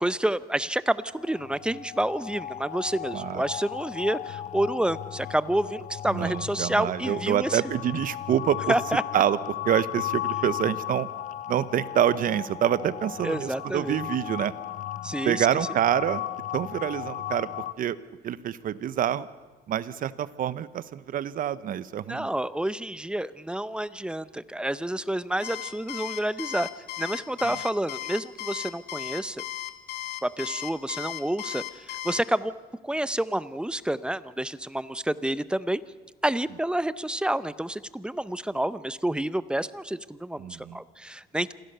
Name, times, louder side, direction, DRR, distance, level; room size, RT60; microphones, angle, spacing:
voice 1, 0.0-7.6 8.7-9.0 13.2-14.0 15.0-15.5 22.1-26.7 27.0-29.4 30.2-32.5 32.8-35.8 36.2-41.5, right 1 dB, 5° right, 15 dB, 0.7 m, -29 dB
sound 1, 1.1-17.7, left 12 dB, 50° left, 0.7 m, -36 dB
voice 2, 3.1-3.4 6.0-8.7 9.1-9.4 9.7-11.1 11.5-14.5 15.2-16.2 16.5-17.5 17.8-18.0 18.2-19.3 19.7-22.3 40.4-40.8, right 10 dB, 55° right, 16 dB, 0.9 m, -26 dB
Alarm, 25.4-32.2, left 15 dB, 75° left, 2.0 m, -35 dB
27.0 x 16.0 x 6.8 m, 1.3 s
cardioid pair, 110°, 17 cm